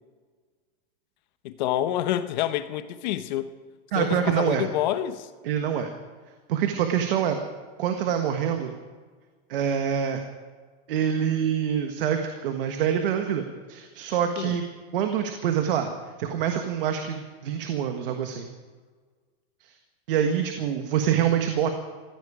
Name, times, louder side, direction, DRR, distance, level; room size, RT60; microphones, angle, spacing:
voice 1, 1.4-3.5 3.9-5.3 14.4-14.6, left 12 dB, 45° left, 1.0 m, -28 dB
voice 2, 3.9-4.6 5.4-5.9 6.5-7.4 7.8-8.7 9.5-10.2 10.9-13.4 13.7-14.6 14.9-15.9 16.2-18.5 19.6-19.8 20.1-21.7, right 9 dB, 65° right, 1.5 m, -25 dB
17.0 x 15.5 x 5.0 m
supercardioid pair, 175°, 30 cm